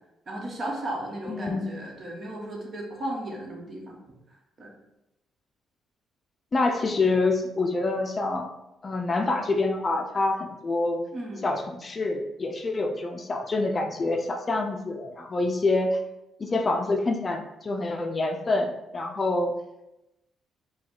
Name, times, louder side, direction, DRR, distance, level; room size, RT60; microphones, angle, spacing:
voice 1, 0.3-4.0 4.6-4.7 11.1-11.5 14.0-14.1, right 1 dB, 40° right, -1 dB, 1.1 m, -35 dB
voice 2, 1.3-1.7 6.5-8.5 8.8-11.0 11.4-16.0 16.4-19.5, left 2 dB, 35° left, 4 dB, 0.4 m, -26 dB
4.6 x 2.3 x 3.8 m, 0.92 s
cardioid pair, 90°, 0 cm